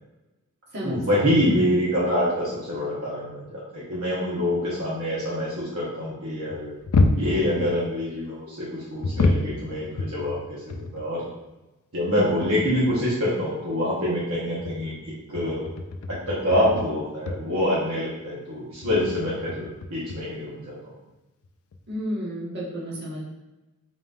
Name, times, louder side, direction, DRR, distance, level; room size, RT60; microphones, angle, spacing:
voice 1, 0.8-6.7 7.1-11.3 11.9-14.9 15.3-15.6 16.1-20.9, left 1 dB, 70° right, -8 dB, 1.1 m, -26 dB
sound 1, 6.5-8.0 9.0-11.1 11.4-11.5 12.0-12.1 12.4-13.0 14.4-17.0 17.3-17.5 18.8-20.2 21.4-21.5 21.7-21.9, left 2 dB, 70° left, 0.4 m, -27 dB
voice 2, 21.9-23.2, equal, 50° right, -6 dB, 1.3 m, -31 dB
4.0 x 3.7 x 2.5 m, 1.0 s
head